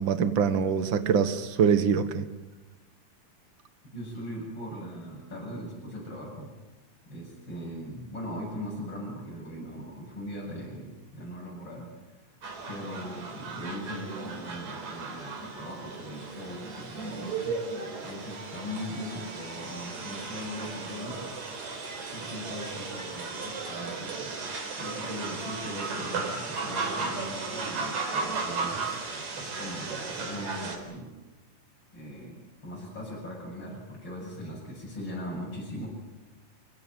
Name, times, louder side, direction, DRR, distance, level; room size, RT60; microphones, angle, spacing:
voice 1, 0.0-2.2, right 7 dB, 50° right, 10 dB, 1.8 m, -24 dB
voice 2, 3.9-6.5 7.1-11.9 12.7-17.6 18.0-21.6 22.1-29.1 29.3-31.1 31.9-35.9, equal, 40° left, -4 dB, 8.4 m, -40 dB
sound 1, 12.4-30.8, right 4 dB, 75° right, 5.1 m, -35 dB
28.5 x 16.5 x 9.2 m, 1.1 s
omnidirectional pair, 3.4 m